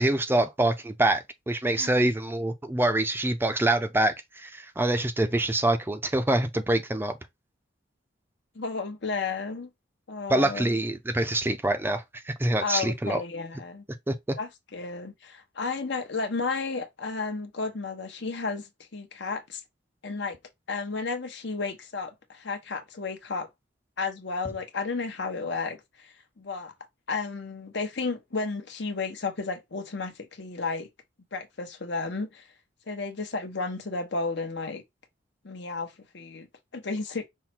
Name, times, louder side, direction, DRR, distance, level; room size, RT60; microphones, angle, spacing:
voice 1, 0.0-7.2 10.3-13.2 14.1-14.2, right 1 dB, 10° right, 0.5 m, -25 dB
voice 2, 8.5-9.7 10.1-10.8 12.6-13.8 14.4-19.6 20.0-20.4 20.7-23.5 24.0-26.7 27.1-30.9 31.3-32.5 32.9-34.8 35.4-36.5 36.7-37.3, left 4 dB, 65° left, 1.0 m, -33 dB
5.6 x 2.2 x 4.3 m
head